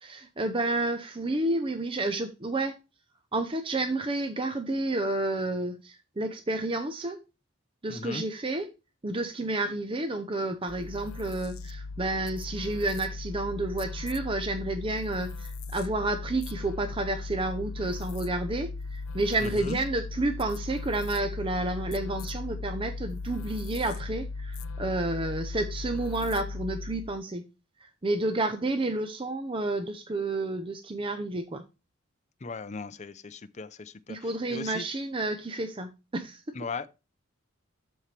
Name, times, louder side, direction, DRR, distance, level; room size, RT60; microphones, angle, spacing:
voice 1, 0.0-2.8 3.3-7.2 7.8-8.7 9.0-27.4 27.8-31.6 34.1-36.6, right 2 dB, 25° right, 0.6 m, -30 dB
voice 2, 7.9-8.2 19.4-19.8 32.4-34.8 36.5-36.9, left 4 dB, 35° left, 0.5 m, -38 dB
sound 1, 10.7-27.2, left 3 dB, 85° left, 0.6 m, -37 dB
12.5 x 4.4 x 3.3 m
head